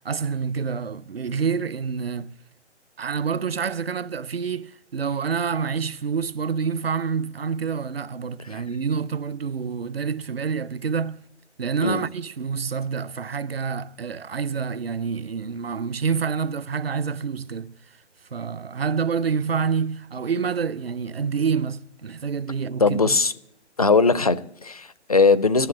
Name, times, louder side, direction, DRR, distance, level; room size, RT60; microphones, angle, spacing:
voice 1, 0.0-2.3 3.0-11.2 11.6-17.7 18.3-23.2, right 6 dB, 55° right, 0.6 m, -27 dB
voice 2, 22.8-23.3 23.8-25.7, left 4 dB, 35° left, 0.4 m, -20 dB
11.0 x 7.3 x 8.4 m
figure-of-eight pair, 140°, 35 cm